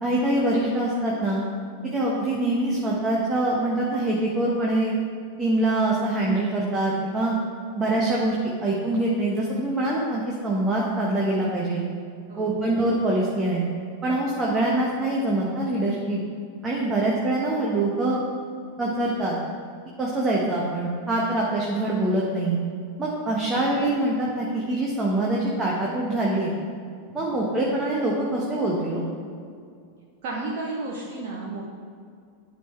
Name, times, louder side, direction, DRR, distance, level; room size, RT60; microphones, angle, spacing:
voice 1, 0.0-1.4 1.8-4.9 5.4-7.3 7.7-11.8 12.4-13.6 14.0-16.2 16.6-18.2 18.8-19.4 20.0-22.6 23.0-26.5 27.1-29.0, right 1 dB, 15° right, -4 dB, 1.3 m, -24 dB
voice 2, 30.2-31.7, right 2 dB, 45° right, -3 dB, 1.1 m, -33 dB
11.5 x 3.9 x 4.3 m, 2.2 s
figure-of-eight pair, 90°, 0 cm